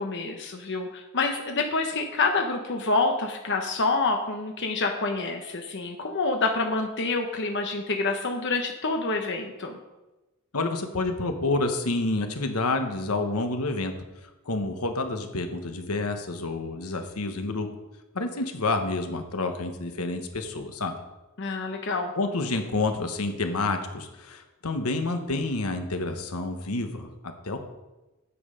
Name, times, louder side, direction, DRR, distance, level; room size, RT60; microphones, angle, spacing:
voice 1, 0.0-9.8 21.4-22.1, left 3 dB, 55° left, 3 dB, 1.0 m, -27 dB
voice 2, 10.5-13.9 14.5-17.7 18.1-20.9 22.2-27.6, left 2 dB, 80° left, 6 dB, 1.2 m, -29 dB
8.7 x 8.3 x 5.6 m, 1.1 s
head